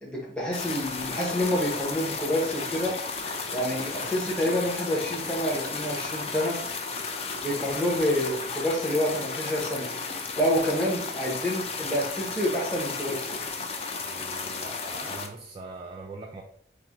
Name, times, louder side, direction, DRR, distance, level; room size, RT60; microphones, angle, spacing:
voice 1, 0.0-3.0 3.5-6.6 7.3-9.9 10.4-13.2, equal, 5° left, -5 dB, 0.8 m, -28 dB
sound 1, 0.5-15.3, left 4 dB, 35° left, 0.4 m, -34 dB
voice 2, 14.0-16.4, right 3 dB, 30° right, 1 dB, 0.3 m, -42 dB
5.9 x 2.1 x 3.0 m, 0.65 s
head